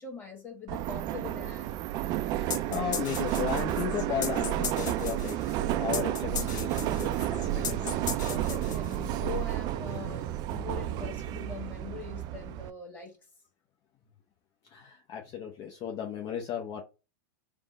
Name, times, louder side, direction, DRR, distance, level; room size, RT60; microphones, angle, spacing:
voice 1, 0.0-1.8 8.3-13.2, left 6 dB, 20° left, 1.6 m, -42 dB
Subway metro underground, 0.7-12.7, right 13 dB, 40° right, 0.3 m, -31 dB
voice 2, 2.4-8.0 14.7-16.8, left 9 dB, 40° left, 0.7 m, -35 dB
sound 1, 2.5-9.2, left 7 dB, 70° left, 0.8 m, -37 dB
3.4 x 2.1 x 4.3 m
hypercardioid pair, 105°, 10 cm